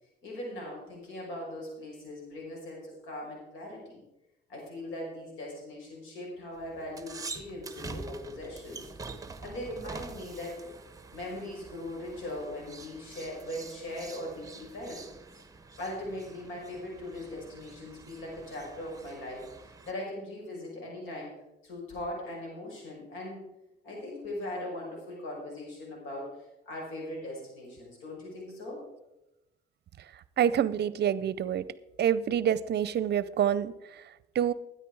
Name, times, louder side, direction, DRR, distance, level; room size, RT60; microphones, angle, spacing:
voice 1, 0.2-4.0 4.5-8.8 9.4-10.7 11.1-15.0 15.3-15.4 15.8-21.3 21.6-23.4 23.8-26.3 26.6-28.8, left 1 dB, 90° left, -2 dB, 5.5 m, -40 dB
sound 1, 6.5-19.9, right 4 dB, 15° right, 1.1 m, -46 dB
voice 2, 30.0-31.7 32.0-34.5, right 9 dB, 55° right, 18 dB, 0.6 m, -28 dB
13.0 x 10.0 x 4.7 m, 0.94 s
cardioid pair, 90°, 20 cm